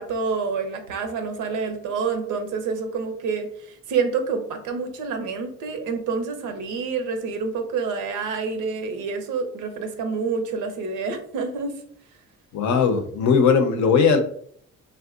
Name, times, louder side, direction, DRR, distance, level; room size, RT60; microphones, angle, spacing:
voice 1, 0.0-11.8, right 5 dB, 85° right, 6 dB, 0.6 m, -28 dB
voice 2, 12.5-14.2, left 5 dB, 70° left, 6 dB, 0.6 m, -18 dB
3.4 x 2.1 x 2.4 m, 0.62 s
cardioid pair, 90°, 30 cm